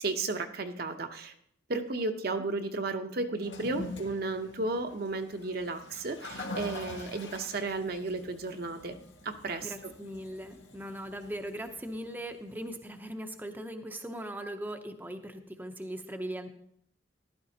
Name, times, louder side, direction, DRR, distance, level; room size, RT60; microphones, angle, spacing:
voice 1, 0.0-1.3 1.7-9.0 9.2-9.9, right 3 dB, 60° right, 6 dB, 0.8 m, -33 dB
Toilet flush, 3.4-12.7, left 1 dB, 80° left, 1.7 m, -45 dB
voice 2, 9.6-16.5, right 1 dB, 10° right, 5 dB, 0.7 m, -39 dB
14.0 x 11.5 x 2.8 m, 0.68 s
head